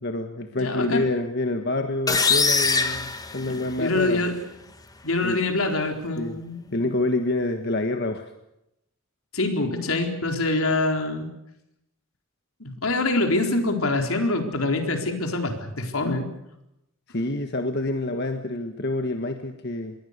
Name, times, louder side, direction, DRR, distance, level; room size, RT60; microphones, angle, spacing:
voice 1, 0.0-4.2 5.2-5.4 6.1-6.4 6.7-8.3 17.1-19.9, left 2 dB, 50° left, 6 dB, 1.5 m, -27 dB
voice 2, 0.5-1.0 3.4-4.3 5.0-6.8 9.3-11.3 12.6-16.3, left 2 dB, 80° left, 4 dB, 4.2 m, -25 dB
sound 1, 2.1-4.0, left 4 dB, 15° left, 1.4 m, -23 dB
27.0 x 22.0 x 6.8 m, 0.85 s
head